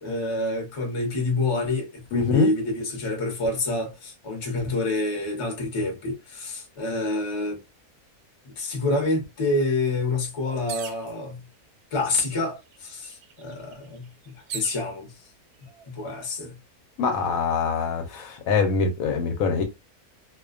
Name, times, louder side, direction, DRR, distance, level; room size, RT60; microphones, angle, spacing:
voice 1, 0.0-7.6 8.4-11.5 11.9-14.1 14.3-15.1 15.9-16.6, left 2 dB, 30° left, 0.6 m, -27 dB
voice 2, 2.1-2.5 17.0-19.6, left 5 dB, 75° left, 1.0 m, -24 dB
sound 1, 10.7-11.1 12.0-12.1 12.5-14.8 15.6-16.1, right 7 dB, 85° right, 1.1 m, -39 dB
2.5 x 2.1 x 2.3 m
omnidirectional pair, 1.6 m